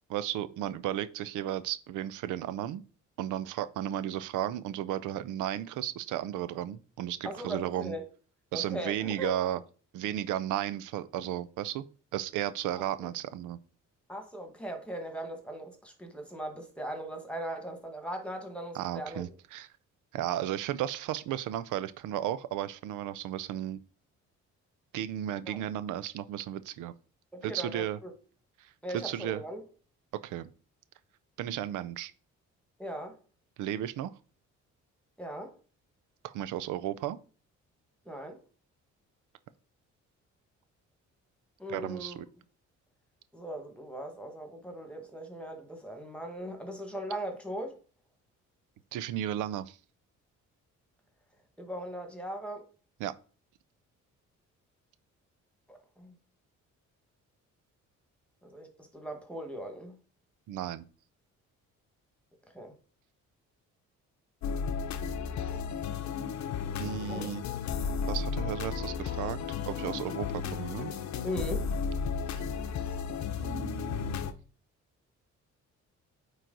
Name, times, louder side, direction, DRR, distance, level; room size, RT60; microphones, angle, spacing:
voice 1, 0.1-2.8 3.2-7.9 8.5-9.6 9.9-11.9 12.1-13.6 18.7-19.7 20.1-23.8 24.9-26.9 27.4-28.0 28.6-29.4 30.2-30.5 31.4-32.1 33.6-34.1 36.2-37.2 41.7-42.3 48.9-49.8 53.0-53.1 60.5-60.9 66.8-67.4 68.1-69.4 69.7-70.9 72.3-72.4 73.4-74.2, right 12 dB, 85° right, 0.5 m, -34 dB
voice 2, 7.2-8.0 8.5-9.3 14.1-19.2 25.5-25.6 27.3-28.1 28.8-29.6 32.8-33.2 35.2-35.5 38.0-38.4 41.6-42.2 43.3-47.7 51.6-52.7 55.7-56.1 58.4-60.0 62.5-62.7 67.1-67.3 71.2-71.7, right 1 dB, 5° left, 1.6 m, -39 dB
sound 1, 64.4-74.3, left 6 dB, 70° left, 0.7 m, -34 dB
9.0 x 3.1 x 3.8 m
cardioid pair, 90°, 30 cm